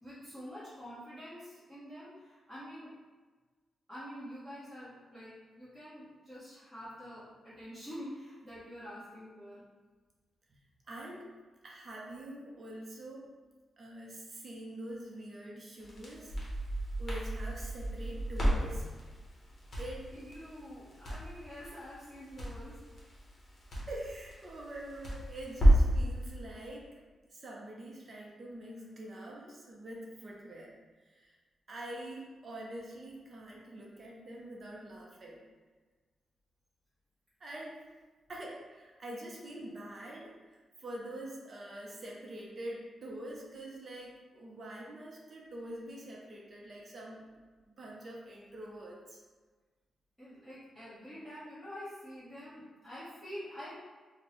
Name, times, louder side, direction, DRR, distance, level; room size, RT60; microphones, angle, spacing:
voice 1, 0.0-2.9 3.9-9.6 20.1-22.8 50.2-53.7, equal, ahead, -15 dB, 1.0 m, -47 dB
voice 2, 10.9-11.3 11.6-13.3 13.8-16.4 16.7-18.9 19.8-20.1 23.9-27.0 27.3-30.7 31.0-31.4 31.7-35.4 37.4-37.8 38.3-47.3 47.7-49.2, right 1 dB, 35° right, -2 dB, 0.5 m, -45 dB
Crackle, 15.8-26.0, right 1 dB, 35° left, 0.9 m, -32 dB
4.2 x 2.0 x 3.0 m, 1.3 s
wide cardioid pair, 170°, 0 cm